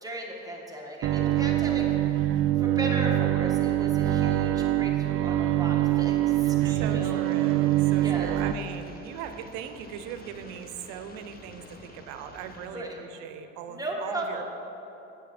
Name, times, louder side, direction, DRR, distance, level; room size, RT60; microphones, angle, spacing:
voice 1, 0.0-1.9 2.6-7.2 8.0-8.3 12.7-13.0 13.7-14.4, right 1 dB, 10° right, -2 dB, 1.5 m, -36 dB
Bowed string instrument, 1.0-8.5, right 13 dB, 45° right, 0.4 m, -24 dB
sound 1, 6.6-12.7, left 2 dB, 30° left, 1.2 m, -49 dB
voice 2, 6.6-14.4, right 8 dB, 85° right, 9 dB, 0.7 m, -39 dB
8.5 x 7.9 x 4.2 m, 3.0 s
supercardioid pair, 90°, 30 cm